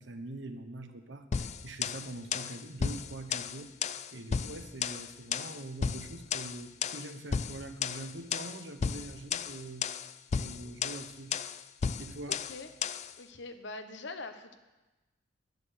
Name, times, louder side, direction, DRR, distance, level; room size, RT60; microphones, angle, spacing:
voice 1, 0.0-3.7 4.1-9.9 10.3-11.4 12.0-12.5, right 2 dB, 65° right, 7 dB, 1.2 m, -44 dB
sound 1, 1.3-13.1, left 6 dB, 35° left, 0.4 m, -35 dB
voice 2, 13.2-14.6, left 3 dB, 65° left, 8 dB, 1.1 m, -43 dB
11.0 x 10.5 x 7.0 m, 1.1 s
head